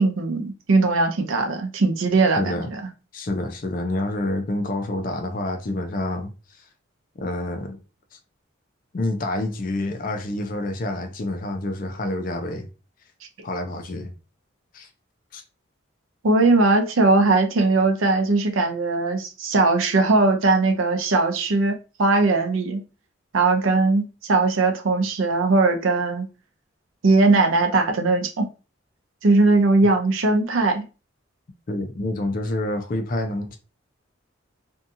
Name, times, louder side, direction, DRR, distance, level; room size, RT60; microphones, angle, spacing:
voice 1, 0.0-2.8 16.2-22.8 23.3-26.3 27.0-28.5 29.2-30.9, right 3 dB, 80° right, 0.6 m, -19 dB
voice 2, 2.4-2.7 3.1-6.3 7.2-7.8 8.1-8.2 8.9-12.7 13.4-14.1 14.7-14.9 15.3-15.4 31.7-33.6, left 2 dB, 45° left, 0.4 m, -28 dB
2.7 x 2.3 x 2.6 m
head